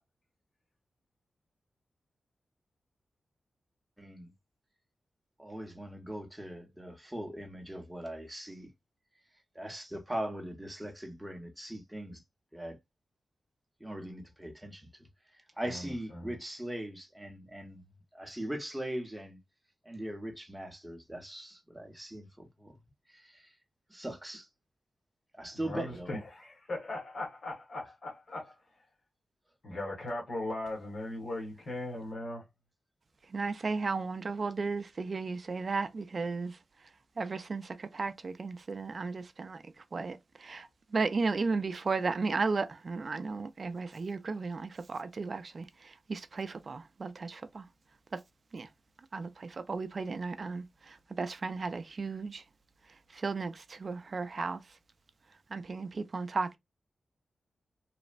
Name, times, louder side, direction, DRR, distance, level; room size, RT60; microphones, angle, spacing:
voice 1, 4.0-4.3 5.4-8.7 9.5-12.2 12.5-12.8 13.8-14.9 15.6-17.9 18.1-19.4 19.8-22.8 23.1-23.5 23.9-24.5 25.4-26.1, right 1 dB, 5° right, 0.7 m, -40 dB
voice 2, 15.7-16.3 25.5-28.5 29.6-32.4, left 1 dB, 50° left, 1.3 m, -39 dB
voice 3, 33.3-36.5 37.2-39.6 39.9-40.7 40.9-45.7 46.1-47.6 48.5-48.7 49.1-52.4 53.1-54.6 55.5-56.6, right 4 dB, 40° right, 0.4 m, -34 dB
3.1 x 2.0 x 2.4 m
wide cardioid pair, 155°, 0 cm